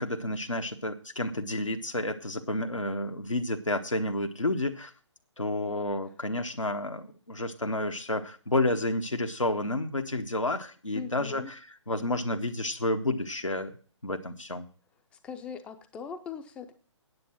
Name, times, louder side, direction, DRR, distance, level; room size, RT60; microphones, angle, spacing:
voice 1, 0.0-4.9 5.4-11.6 11.9-13.7 14.0-14.7, left 1 dB, 85° left, 4 dB, 1.2 m, -30 dB
voice 2, 11.0-11.5 15.1-16.7, left 7 dB, 5° left, 9 dB, 0.5 m, -40 dB
9.5 x 7.6 x 7.3 m, 0.41 s
figure-of-eight pair, 140°, 16 cm